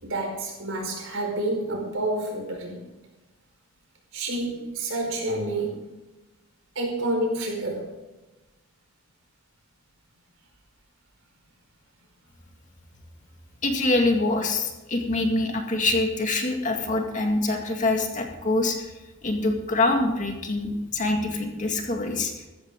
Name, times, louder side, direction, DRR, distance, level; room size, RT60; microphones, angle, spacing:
voice 1, 0.0-2.8 4.1-5.8 6.7-7.9, right 1 dB, 70° right, 1 dB, 4.9 m, -29 dB
voice 2, 13.6-18.9 19.2-22.3, left 2 dB, 35° left, 2 dB, 2.2 m, -25 dB
14.5 x 14.0 x 3.9 m, 1.1 s
head